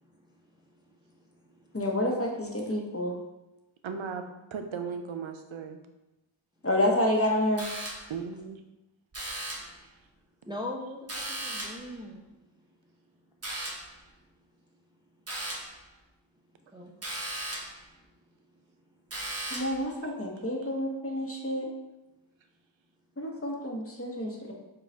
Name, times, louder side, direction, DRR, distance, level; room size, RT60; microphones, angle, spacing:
voice 1, 1.1-1.7 10.4-12.2 16.7-16.9, left 1 dB, 10° right, -1 dB, 0.5 m, -40 dB
voice 2, 1.7-3.2 6.6-7.7 19.5-21.7 23.2-24.5, left 1 dB, 30° left, 0 dB, 0.9 m, -29 dB
voice 3, 3.8-4.2 4.5-5.8 8.1-8.6 20.6-20.7 21.4-21.5, right 6 dB, 75° right, 6 dB, 0.6 m, -36 dB
sound 1, 7.6-8.2 9.1-9.8 11.1-11.9 13.4-14.0 15.3-15.8 17.0-17.8 19.1-19.8, right 1 dB, 30° right, 1.1 m, -37 dB
4.8 x 2.3 x 4.4 m, 0.96 s
wide cardioid pair, 40°, 47 cm